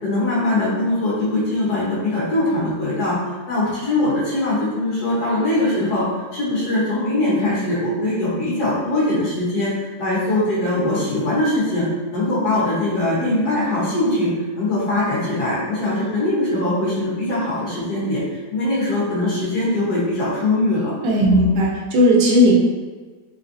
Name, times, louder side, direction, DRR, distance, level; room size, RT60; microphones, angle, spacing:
voice 1, 0.0-11.9 12.1-14.3 14.6-18.2 18.5-20.9 21.3-21.5, left 1 dB, 65° left, -8 dB, 1.6 m, -21 dB
voice 2, 21.0-22.5, equal, 85° right, -2 dB, 1.4 m, -15 dB
4.2 x 3.2 x 2.6 m, 1.4 s
omnidirectional pair, 1.9 m